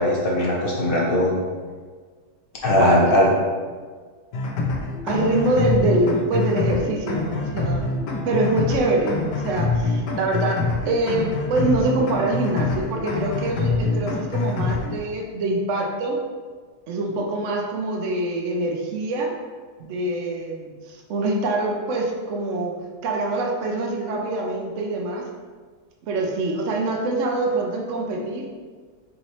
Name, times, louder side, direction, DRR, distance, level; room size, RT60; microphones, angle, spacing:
voice 1, 0.0-1.3 2.6-3.3, left 1 dB, 50° left, -4 dB, 0.6 m, -19 dB
voice 2, 2.8-3.1 5.0-7.9 8.2-16.2 16.9-19.3 19.8-22.7 23.0-25.3 26.1-28.4, right 2 dB, 65° right, 1 dB, 0.7 m, -24 dB
sound 1, 4.3-15.0, left 3 dB, 85° left, 1.3 m, -25 dB
5.4 x 3.0 x 2.9 m, 1.6 s
omnidirectional pair, 1.7 m